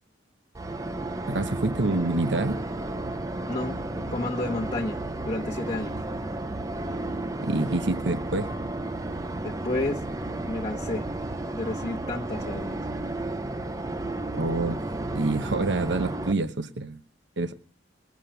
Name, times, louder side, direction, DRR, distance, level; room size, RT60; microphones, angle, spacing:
sound 1, 0.5-16.3, right 2 dB, 20° right, 0.7 m, -32 dB
voice 1, 1.3-2.6 7.4-8.5 14.3-14.8 15.1-17.0 17.4-17.5, right 2 dB, 75° right, 11 dB, 0.9 m, -27 dB
voice 2, 3.5-3.8 4.1-5.0 5.3-5.9 9.4-10.0 10.5-11.1 11.5-12.8, left 2 dB, 35° left, -1 dB, 1.1 m, -31 dB
21.0 x 7.4 x 8.9 m, 0.43 s
head